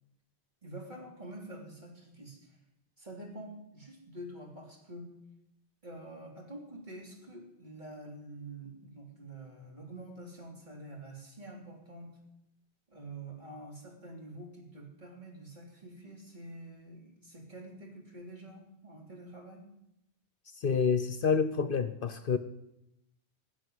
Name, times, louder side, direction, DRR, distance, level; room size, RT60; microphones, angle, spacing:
voice 1, 0.6-2.6 3.0-5.1 5.8-12.2 12.9-19.6, right 1 dB, 45° right, -2 dB, 3.7 m, -47 dB
voice 2, 20.6-22.4, left 6 dB, 55° left, 10 dB, 0.9 m, -28 dB
16.5 x 6.4 x 9.6 m, 0.84 s
omnidirectional pair, 1.1 m